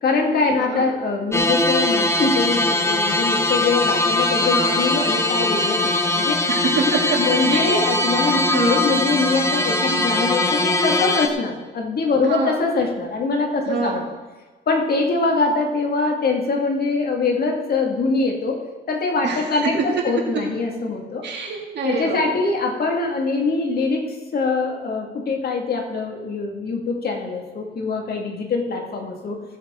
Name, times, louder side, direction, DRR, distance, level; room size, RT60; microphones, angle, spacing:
voice 1, 0.0-6.4 7.2-14.0 14.7-18.6 18.9-21.2 21.8-29.4, left 3 dB, 50° left, 1 dB, 2.4 m, -23 dB
sound 1, 1.3-11.3, left 2 dB, 15° left, 1.0 m, -21 dB
voice 2, 4.4-4.9 6.5-7.2 7.5-7.8 8.5-8.8 12.2-12.6 13.6-14.1 19.2-19.4 19.7-20.0 21.2-22.4, right 4 dB, 60° right, -1 dB, 2.9 m, -25 dB
16.5 x 7.9 x 3.9 m, 1.2 s
cardioid pair, 90°, 20 cm